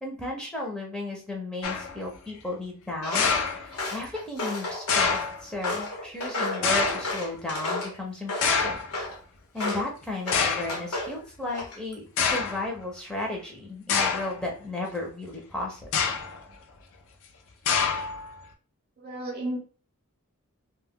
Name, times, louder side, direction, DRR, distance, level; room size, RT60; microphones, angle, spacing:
voice 1, 0.0-8.8 9.5-16.1, left 2 dB, 5° left, -1 dB, 0.5 m, -34 dB
sound 1, 1.6-2.0 3.1-4.0 4.9-5.4 6.6-7.2 8.4-8.9 9.8-9.9 10.3-10.8 11.6-11.7 12.2-12.7 13.9-14.4 15.8-16.4 17.7-18.3, left 5 dB, 65° left, 0.5 m, -26 dB
Walk footsteps, 3.0-3.3 3.7-5.2 5.6-7.9 8.3-9.2 9.6-9.9 10.3-11.1 11.5-11.9, left 2 dB, 85° left, 0.9 m, -32 dB
voice 2, 19.0-19.6, right 1 dB, 45° right, 2 dB, 0.7 m, -32 dB
2.2 x 2.1 x 3.5 m, 0.38 s
head